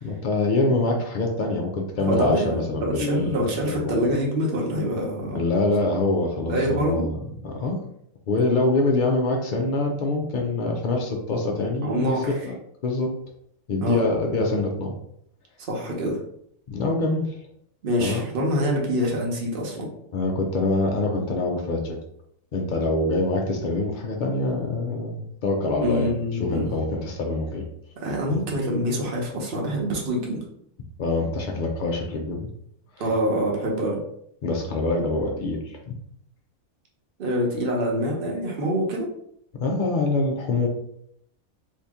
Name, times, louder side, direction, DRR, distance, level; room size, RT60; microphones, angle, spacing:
voice 1, 0.0-3.5 3.8-4.1 5.3-7.8 8.3-12.6 12.8-13.2 13.7-15.0 16.7-17.4 18.0-18.2 20.1-22.0 22.5-26.1 26.4-27.7 31.0-32.5 33.0-33.1 34.4-35.9 39.6-40.7, left 2 dB, 90° left, 1 dB, 0.4 m, -25 dB
voice 2, 2.0-5.4 6.5-7.1 11.8-12.3 13.8-14.0 15.7-16.2 17.8-19.9 25.8-26.7 28.0-30.4 33.0-34.0 37.2-39.1, equal, 45° right, -1 dB, 0.9 m, -25 dB
2.8 x 2.7 x 3.4 m, 0.71 s
omnidirectional pair, 1.5 m